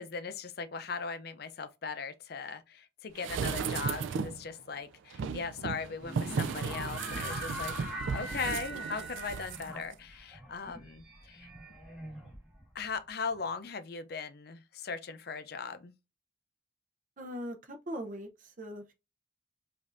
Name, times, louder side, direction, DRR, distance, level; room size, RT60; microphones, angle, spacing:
voice 1, 0.0-7.7 8.1-11.5 12.7-15.9, left 5 dB, 50° left, 0.5 m, -39 dB
sound 1, 3.2-4.5 5.1-9.6 9.9-10.0, right 6 dB, 75° right, 0.3 m, -35 dB
sound 2, 6.0-12.8, equal, 5° right, 1.5 m, -42 dB
voice 2, 17.2-18.9, equal, 40° right, 0.7 m, -40 dB
5.1 x 2.6 x 2.5 m
head